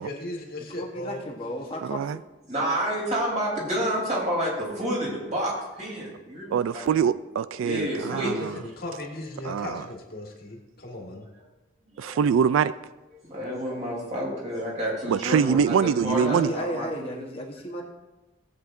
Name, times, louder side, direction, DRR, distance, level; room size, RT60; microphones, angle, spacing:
voice 1, 0.0-1.2 8.2-11.3, left 1 dB, 50° left, 1.7 m, -37 dB
voice 2, 0.8-2.2 12.1-12.2 16.1-17.8, equal, 30° left, 1.1 m, -34 dB
voice 3, 1.8-2.2 6.5-8.6 9.4-9.8 12.0-12.7 15.1-16.5, right 7 dB, 85° right, 0.3 m, -24 dB
voice 4, 2.5-7.1 7.6-8.3 12.0-12.2 13.3-17.2, equal, 35° right, 3.5 m, -29 dB
18.5 x 8.0 x 2.6 m
head